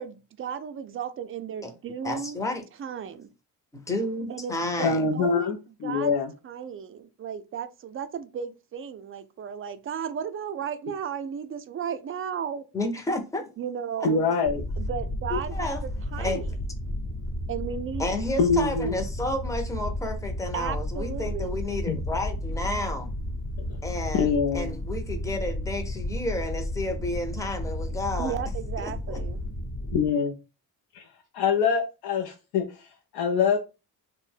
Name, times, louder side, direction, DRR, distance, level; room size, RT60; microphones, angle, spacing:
voice 1, 0.0-2.4 2.8-3.3 4.3-4.9 5.1-5.5 5.8-6.1 6.4-12.6 13.6-14.2 14.8-16.5 17.5-18.1 20.5-21.6 28.2-29.4, right 7 dB, 35° right, 0.4 m, -34 dB
voice 2, 2.0-2.6 3.7-5.1 12.7-13.5 14.0-14.1 15.3-15.8 16.2-16.4 18.0-23.1 23.8-28.4 28.8-29.2, left 2 dB, 10° left, 0.6 m, -31 dB
voice 3, 4.8-5.6 5.8-6.3 14.0-14.6 18.4-19.0 21.9-22.0 24.1-24.7 29.9-30.4 30.9-31.1 31.3-33.6, left 5 dB, 80° left, 0.5 m, -24 dB
sound 1, 14.4-30.1, left 1 dB, 55° left, 0.9 m, -32 dB
2.6 x 2.1 x 3.3 m
cardioid pair, 90°, 39 cm